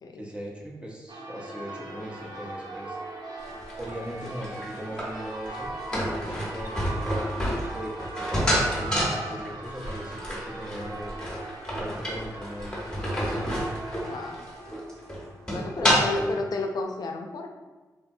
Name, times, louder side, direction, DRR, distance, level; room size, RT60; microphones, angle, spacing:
voice 1, 0.2-3.0 3.8-5.7 6.0-7.1 7.7-8.0 8.3-11.1 11.8-13.7 15.5-16.4, equal, 15° right, -2 dB, 0.6 m, -39 dB
Church bell, 1.1-16.8, right 2 dB, 70° right, 0.4 m, -42 dB
sound 1, 1.9-11.6, right 3 dB, 50° right, 1.1 m, -44 dB
sound 2, 3.5-16.3, equal, 10° left, 0.9 m, -29 dB
voice 2, 14.0-14.4 15.5-17.5, left 2 dB, 65° left, 3 dB, 0.4 m, -32 dB
3.1 x 2.0 x 2.6 m, 1.2 s
cardioid pair, 70°, 7 cm